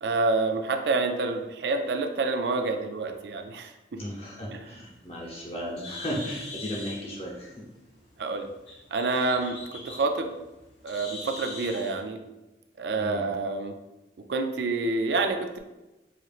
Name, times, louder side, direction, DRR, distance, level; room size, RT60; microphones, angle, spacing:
voice 1, 0.0-3.7 4.5-4.6 8.2-8.5 8.9-10.3 10.8-12.2 12.8-13.7 14.3-15.6, right 3 dB, 75° right, 6 dB, 0.4 m, -27 dB
voice 2, 4.0-7.5 13.0-13.3, equal, 35° left, -3 dB, 0.8 m, -35 dB
Bird, 4.7-12.0, left 3 dB, 85° left, 1.1 m, -43 dB
5.0 x 3.0 x 2.4 m, 1.0 s
head